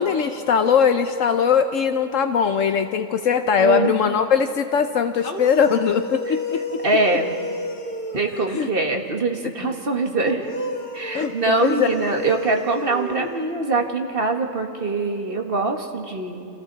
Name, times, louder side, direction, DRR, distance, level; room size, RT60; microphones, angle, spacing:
voice 1, 0.0-6.8 8.5-8.7 11.1-12.0, left 7 dB, 70° left, 7 dB, 1.1 m, -20 dB
voice 2, 3.6-4.2 6.3-6.4 6.8-7.4 8.1-10.5 10.9-16.5, right 3 dB, 45° right, 3 dB, 1.8 m, -23 dB
sound 1, 5.2-8.9 10.2-13.9, left 1 dB, 40° left, 1.7 m, -32 dB
30.0 x 27.0 x 4.1 m, 2.7 s
omnidirectional pair, 1.4 m